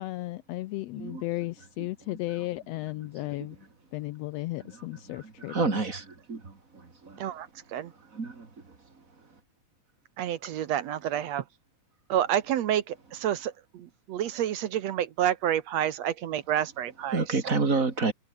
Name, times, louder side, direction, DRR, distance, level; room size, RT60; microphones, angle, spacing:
voice 1, 0.0-3.6 3.9-5.5, left 17 dB, 80° left, 1.5 m, -34 dB
voice 2, 1.8-2.2 3.4-3.5 4.6-7.2 8.1-8.7 17.1-18.1, right 4 dB, 30° right, 2.7 m, -30 dB
voice 3, 7.2-7.9 10.2-11.4 12.1-17.6, right 11 dB, 70° right, 2.1 m, -29 dB
omnidirectional pair, 3.3 m